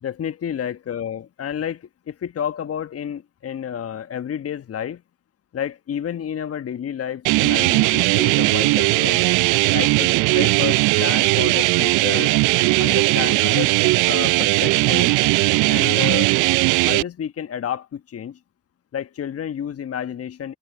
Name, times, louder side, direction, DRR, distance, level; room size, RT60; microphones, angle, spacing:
voice 1, 0.0-5.0 5.5-9.2 9.7-12.3 12.8-15.1 15.7-16.3 16.8-18.4 18.9-20.6, left 9 dB, 45° left, 1.4 m, -30 dB
sound 1, 7.3-17.0, right 23 dB, 65° right, 0.7 m, -18 dB
figure-of-eight pair, 40°, 32 cm